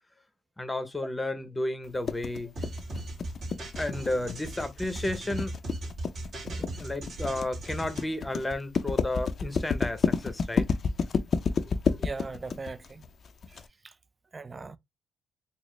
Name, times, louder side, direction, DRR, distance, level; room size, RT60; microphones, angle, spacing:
voice 1, 0.6-2.5 3.8-5.5 6.8-10.7 11.9-12.1, left 1 dB, 15° left, 0.7 m, -32 dB
sound 1, 2.1-13.6, left 5 dB, 50° left, 0.4 m, -29 dB
sound 2, 2.6-8.0, right 1 dB, 55° right, 1.8 m, -38 dB
voice 2, 6.4-6.8 12.0-13.0 13.8-13.9 14.3-14.8, right 4 dB, 30° right, 0.3 m, -39 dB
3.9 x 2.0 x 3.1 m
cardioid pair, 90°, 0 cm